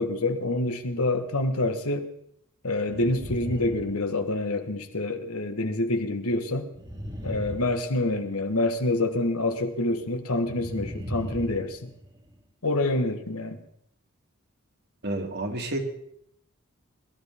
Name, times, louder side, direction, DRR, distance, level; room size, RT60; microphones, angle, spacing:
voice 1, 0.0-2.1 2.6-6.7 7.2-11.9 12.6-13.6, left 2 dB, 85° left, 6 dB, 1.6 m, -27 dB
sound 1, 0.8-1.2 2.8-4.6 6.7-8.4 10.4-12.3, equal, 20° right, 1.7 m, -38 dB
voice 2, 15.0-15.8, right 1 dB, 50° right, 3 dB, 2.1 m, -30 dB
22.0 x 12.5 x 3.7 m, 0.72 s
head